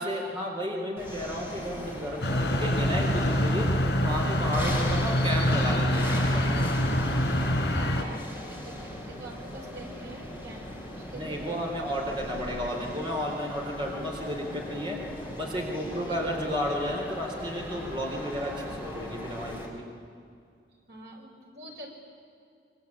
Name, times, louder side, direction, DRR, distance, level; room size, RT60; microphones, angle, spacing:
voice 1, 0.0-3.7 4.0-6.6 11.1-15.0 15.4-19.9, equal, 30° right, -1 dB, 4.0 m, -32 dB
sound 1, 1.0-19.7, left 1 dB, 15° right, 4.8 m, -39 dB
sound 2, 2.2-8.0, equal, 75° left, 4.1 m, -25 dB
voice 2, 7.7-11.5 16.1-16.2 20.9-21.9, right 2 dB, 75° right, 0 dB, 5.9 m, -45 dB
26.5 x 24.0 x 8.8 m, 2.4 s
head